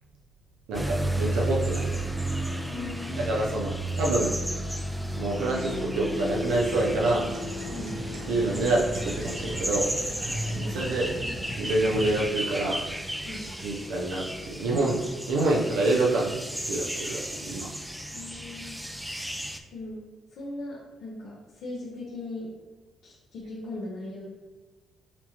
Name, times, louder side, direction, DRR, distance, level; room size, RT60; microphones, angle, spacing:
sound 1, 0.7-19.6, right 1 dB, 5° right, 0.4 m, -33 dB
voice 1, 0.7-2.0 3.2-4.3 5.2-7.3 8.3-9.9 10.6-11.1 11.6-12.8 13.6-15.0 15.3-17.7, right 2 dB, 85° right, -3 dB, 0.5 m, -27 dB
voice 2, 2.7-3.2 7.7-7.9 10.5-10.9 13.2-13.5 18.1-18.8 19.7-20.0 20.3-22.5 23.0-24.3, left 2 dB, 85° left, -7 dB, 0.7 m, -39 dB
sound 2, 6.8-12.2, right 1 dB, 65° right, 1.0 m, -37 dB
4.3 x 2.9 x 2.8 m, 1.2 s
cardioid pair, 90°, 0 cm